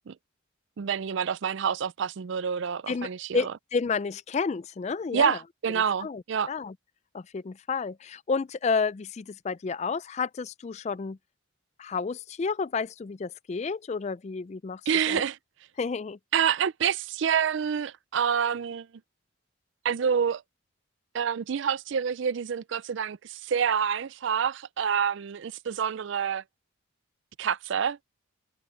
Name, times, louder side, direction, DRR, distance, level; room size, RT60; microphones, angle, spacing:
voice 1, 0.8-3.5 5.1-6.5 14.9-15.4 16.3-18.9 19.8-20.4 21.1-26.4 27.4-28.0, right 7 dB, 60° right, 0.4 m, -27 dB
voice 2, 3.3-5.4 6.0-6.2 6.5-6.7 7.1-11.2 11.8-14.8 15.1-15.2 15.8-16.2, left 5 dB, 30° left, 0.3 m, -30 dB
head